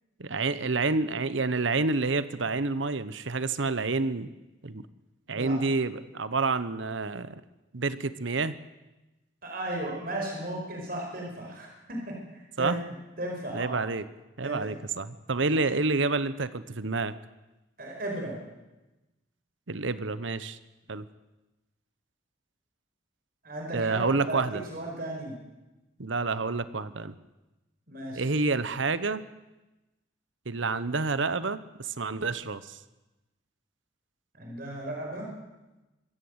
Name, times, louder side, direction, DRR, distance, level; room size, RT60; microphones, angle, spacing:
voice 1, 0.2-4.3 4.6-4.8 5.3-7.4 7.7-8.5 12.6-12.8 13.5-14.0 14.4-17.1 19.7-20.6 20.9-21.0 23.7-24.6 26.0-27.1 28.2-29.2 30.5-32.8, right 3 dB, 75° right, 15 dB, 1.0 m, -28 dB
voice 2, 5.3-5.6 9.4-12.2 12.6-12.8 13.2-13.8 14.4-14.8 15.5-15.6 17.8-18.4 23.4-25.4 27.9-28.3 34.3-35.3, right 1 dB, 50° right, 0 dB, 5.4 m, -35 dB
25.0 x 15.0 x 8.1 m, 1.0 s
head